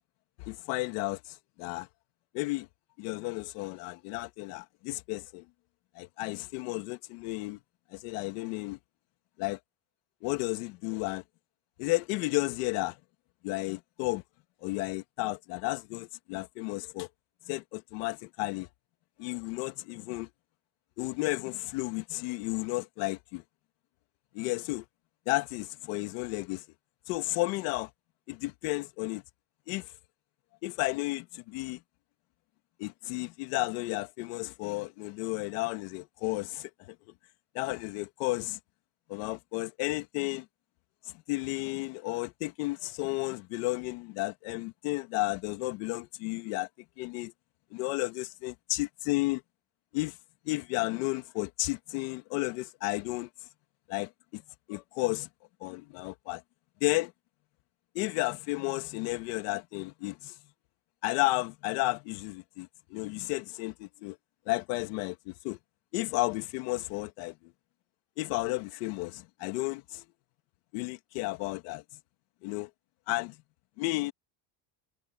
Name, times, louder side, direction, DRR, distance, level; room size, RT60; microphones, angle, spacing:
voice 1, 0.4-1.9 2.3-2.7 3.0-5.4 6.0-7.6 7.9-8.8 9.4-9.6 10.2-11.2 11.8-13.0 13.4-14.2 14.6-17.1 17.5-18.7 19.2-20.3 21.0-23.4 24.3-24.9 25.3-26.7 27.1-27.9 28.3-29.2 29.7-29.9 30.6-31.8 32.8-37.0 37.5-38.6 39.1-40.5 41.0-46.7 47.0-47.3 47.7-49.4 49.9-50.2 50.5-53.5 53.9-54.4 54.7-55.3 55.6-56.4 56.8-57.1 58.0-60.4 61.0-64.2 64.5-65.6 65.9-67.5 68.2-70.1 70.7-71.8 72.4-72.7 73.1-73.4 73.8-74.1, left 21 dB, 90° left, 1.8 m, -33 dB
cardioid pair, 175°, 45 cm